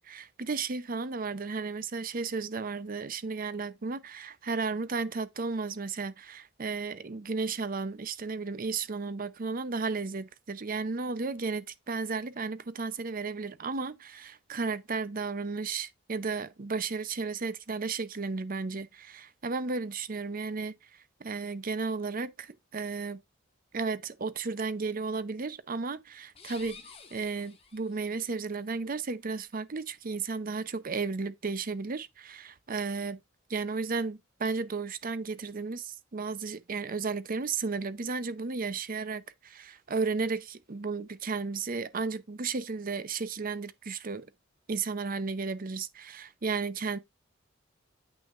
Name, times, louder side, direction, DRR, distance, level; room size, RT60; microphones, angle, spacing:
voice 1, 0.0-23.2 23.7-26.8 27.1-33.2 33.5-44.3 44.7-47.0, right 4 dB, 45° right, 0.7 m, -34 dB
sound 1, 26.3-28.3, left 5 dB, 30° left, 1.7 m, -51 dB
8.4 x 6.2 x 2.5 m
head